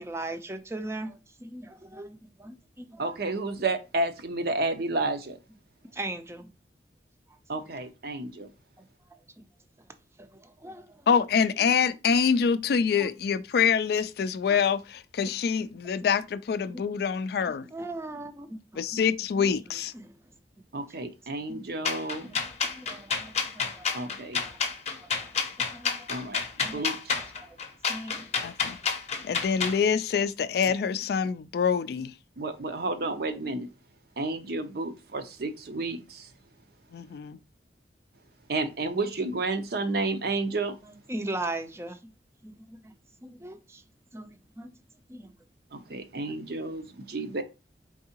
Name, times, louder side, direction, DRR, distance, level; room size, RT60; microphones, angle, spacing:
voice 1, 0.0-3.2 5.9-6.5 7.3-7.4 8.8-9.3 9.8-9.9 10.2-11.1 11.6-11.7 13.0-13.1 14.5-14.6 16.0-16.1 16.7-17.0 17.5-19.5 19.9-20.2 20.9-21.0 21.5-21.6 22.2-24.5 25.0-26.2 26.6-26.9 27.4-27.6 27.9-28.7 29.1-29.4 40.8-42.1 42.4-42.9 43.2-43.8 44.1-44.8 45.1-45.3, right 2 dB, 15° right, 0.4 m, -40 dB
voice 2, 3.0-5.4 7.5-8.5 20.7-22.3 23.9-24.4 26.1-27.1 32.4-33.7 34.2-36.3 38.5-40.7 45.7-47.4, right 2 dB, 60° right, 0.6 m, -31 dB
voice 3, 11.1-17.7 18.8-19.9 28.4-28.8 29.2-32.1 36.9-37.4, left 6 dB, 60° left, 0.3 m, -25 dB
sound 1, 21.8-29.8, left 5 dB, 40° left, 0.7 m, -29 dB
4.6 x 3.6 x 2.8 m
head